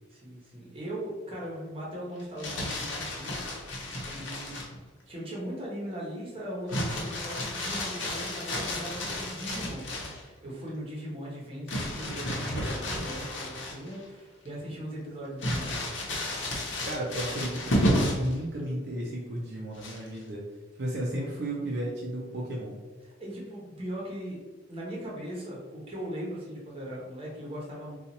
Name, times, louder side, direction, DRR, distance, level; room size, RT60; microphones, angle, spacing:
voice 1, 0.1-4.6 5.1-15.9 23.0-24.4 24.7-28.0, equal, 30° right, -4 dB, 1.0 m, -39 dB
Crumpling crinkling, 2.2-4.8 6.7-10.2 11.7-14.0 14.5-14.6 15.4-18.3 19.8-20.2, equal, 75° left, 0.8 m, -32 dB
voice 2, 16.8-20.4 20.8-22.8, right 1 dB, 60° right, -4 dB, 0.6 m, -33 dB
2.8 x 2.4 x 3.9 m, 1.2 s
head